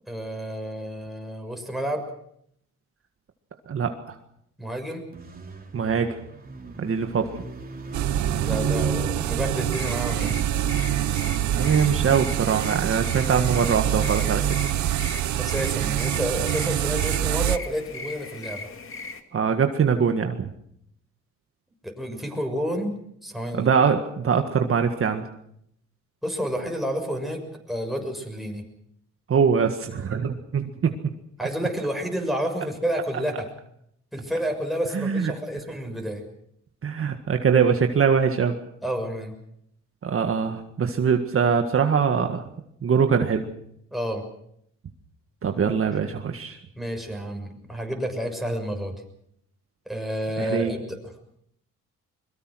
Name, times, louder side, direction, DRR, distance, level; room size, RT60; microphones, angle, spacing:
voice 1, 0.1-2.0 4.6-5.0 8.4-10.4 15.4-18.7 21.8-22.9 23.2-23.7 26.2-27.4 27.7-28.6 31.4-33.5 34.1-36.2 38.8-39.3 43.9-44.2 46.7-48.9 49.9-51.0, equal, ahead, 2 dB, 6.5 m, -30 dB
voice 2, 3.7-4.2 5.7-6.2 6.8-7.3 11.5-14.4 19.3-20.5 23.5-25.3 29.3-30.9 34.9-35.3 36.8-38.6 40.0-42.4 42.8-43.5 45.4-46.6 50.4-50.7, right 6 dB, 45° right, 6 dB, 1.8 m, -23 dB
sound 1, 5.1-10.6, right 4 dB, 30° right, 3.9 m, -34 dB
sound 2, 7.9-17.6, right 12 dB, 70° right, 0.8 m, -25 dB
Crickets&Quail, 9.6-19.2, left 3 dB, 45° left, 2.3 m, -39 dB
22.5 x 22.0 x 6.3 m, 0.70 s
cardioid pair, 90°, 30 cm